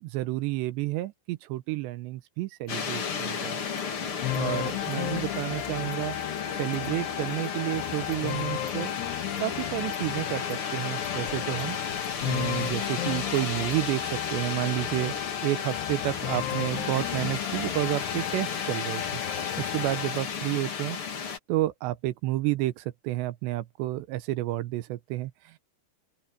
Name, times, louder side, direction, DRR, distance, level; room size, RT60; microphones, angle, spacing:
voice 1, 0.0-3.6 4.3-6.2 6.6-8.9 9.4-11.8 12.3-15.1 15.4-19.0 19.6-21.0 21.5-25.6, right 16 dB, 80° right, 2.9 m, -30 dB
sound 1, 2.7-21.4, left 6 dB, 45° left, 1.9 m, -33 dB
Insect, 2.7-2.8 3.2-3.3 3.8-3.9 4.3-4.4 4.9-5.0 5.3-5.5 5.9-6.0 6.4-6.5 6.8-6.9 7.4-7.6 8.1-8.2 8.7-8.8 9.4-9.5 9.9-10.1 10.5-10.6 11.0-11.2 11.6-11.7 12.0-12.1, right 5 dB, 45° right, 5.4 m, -56 dB
sound 2, 4.2-20.3, left 16 dB, 80° left, 2.7 m, -35 dB
open air
omnidirectional pair, 5.3 m